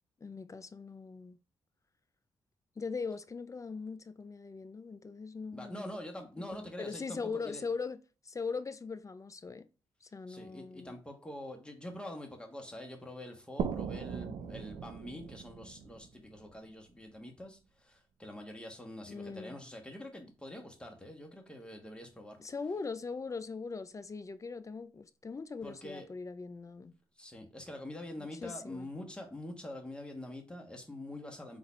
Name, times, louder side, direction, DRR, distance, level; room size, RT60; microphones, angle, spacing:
voice 1, 0.2-1.4 2.8-6.0 6.5-8.0 8.2-9.7 10.0-11.0 19.1-19.6 22.4-26.9 28.2-28.9, left 4 dB, 30° left, 0.4 m, -40 dB
voice 2, 5.5-7.6 10.3-22.4 25.6-26.1 27.2-31.6, left 1 dB, 10° left, 1.3 m, -45 dB
sound 1, 13.6-17.1, right 7 dB, 70° right, 0.5 m, -40 dB
3.9 x 2.5 x 4.3 m
supercardioid pair, 45°, 11 cm